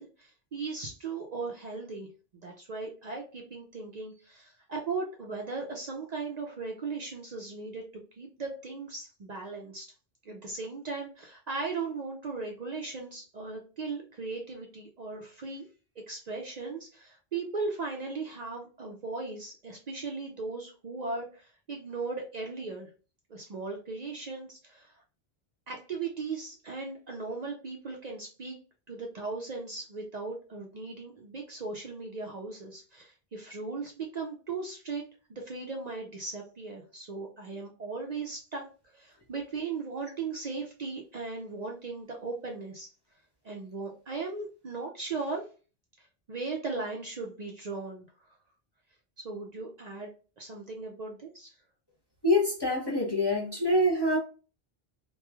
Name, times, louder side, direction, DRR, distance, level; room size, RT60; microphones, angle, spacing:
voice 1, 0.0-2.1 2.4-7.8 8.2-9.9 10.3-15.7 16.1-22.9 23.3-25.0 25.7-28.6 28.9-35.0 35.3-42.9 43.4-45.4 46.0-48.1 49.2-50.1 50.4-51.6, right 4 dB, 50° right, 0.5 m, -37 dB
voice 2, 52.2-54.2, left 1 dB, 30° left, 0.6 m, -25 dB
3.0 x 2.2 x 2.2 m
omnidirectional pair, 1.1 m